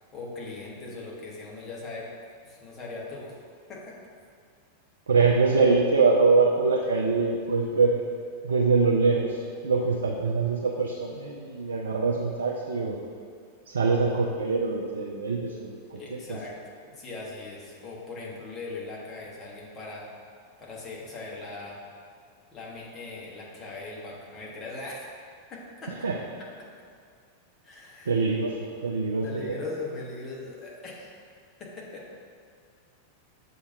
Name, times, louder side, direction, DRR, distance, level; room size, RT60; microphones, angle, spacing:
voice 1, 0.0-2.1 2.4-3.4 3.7-4.0 15.9-20.1 20.6-21.8 22.5-25.1 25.5-26.1 27.6-28.2 29.2-31.2 31.6-32.1, left 3 dB, 25° left, -4 dB, 1.3 m, -40 dB
voice 2, 5.1-8.0 8.4-13.0 13.7-16.0 16.3-16.4 26.0-26.2 28.1-28.6 28.8-29.6, right 4 dB, 70° right, -1 dB, 0.5 m, -24 dB
6.7 x 2.8 x 5.4 m, 2.2 s
figure-of-eight pair, 90°, 0 cm